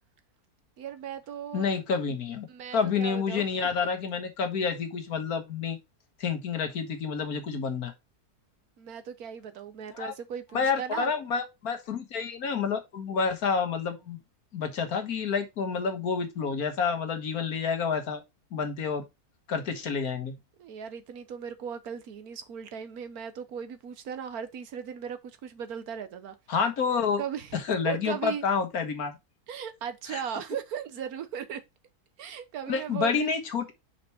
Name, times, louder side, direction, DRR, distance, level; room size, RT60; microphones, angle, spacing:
voice 1, 0.8-1.7 2.5-3.7 8.8-11.1 20.6-26.4 27.2-28.4 29.5-31.6 32.2-33.3, right 8 dB, 75° right, 1.4 m, -37 dB
voice 2, 1.5-2.5 2.7-5.8 6.2-7.9 9.9-10.1 10.5-14.2 14.5-18.2 18.5-19.0 19.5-20.3 26.5-27.2 27.5-29.2 30.1-30.2 32.7-33.7, left 5 dB, 70° left, 1.8 m, -29 dB
5.9 x 5.2 x 4.2 m
omnidirectional pair, 1.6 m